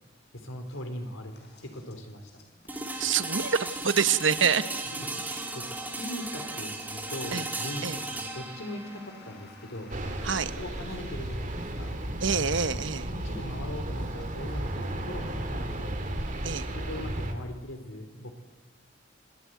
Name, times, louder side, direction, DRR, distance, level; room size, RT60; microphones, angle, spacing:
voice 1, 0.3-1.3 1.6-2.4 4.9-9.9 10.2-12.0 13.1-16.0 16.7-18.3, left 1 dB, 85° left, 6 dB, 4.3 m, -40 dB
sound 1, 0.7-17.7, left 3 dB, 55° left, 6.0 m, -57 dB
sound 2, 2.7-12.6, right 2 dB, 10° right, 3.1 m, -37 dB
voice 2, 3.0-4.9 7.3-7.4 7.8-8.0 10.2-10.5 12.2-13.1 16.4-16.7, right 6 dB, 65° right, 12 dB, 1.1 m, -26 dB
sound 3, 9.9-17.3, right 1 dB, 40° right, 2.7 m, -34 dB
26.0 x 17.0 x 9.6 m, 1.1 s
head